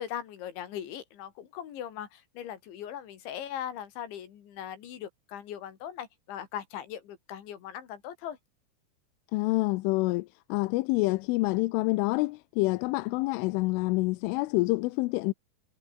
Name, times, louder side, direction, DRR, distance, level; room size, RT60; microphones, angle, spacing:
voice 1, 0.0-8.4, left 10 dB, 65° left, 5.0 m, -39 dB
voice 2, 9.3-15.3, left 22 dB, 85° left, 3.1 m, -27 dB
omnidirectional pair, 5.8 m